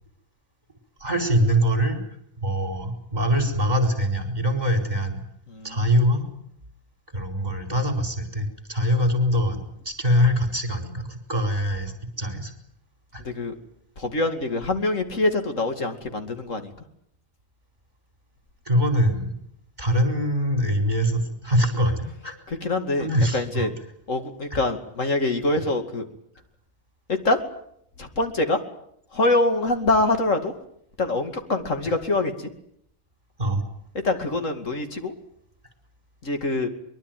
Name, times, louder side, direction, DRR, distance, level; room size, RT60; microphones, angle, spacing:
voice 1, 1.0-2.0 2.4-5.2 5.6-6.2 7.1-12.5 13.1-13.2 18.6-19.3 19.8-22.3 23.0-23.7 24.5-24.6 33.4-33.6, equal, 35° right, 5 dB, 4.6 m, -23 dB
voice 2, 5.5-5.9 13.2-13.5 14.0-16.7 22.5-23.7 24.1-26.0 27.1-27.4 28.0-28.6 29.1-30.5 31.0-32.5 34.0-35.1 36.2-36.7, left 2 dB, 70° left, 6 dB, 2.8 m, -24 dB
23.5 x 22.5 x 9.2 m, 0.72 s
omnidirectional pair, 1.4 m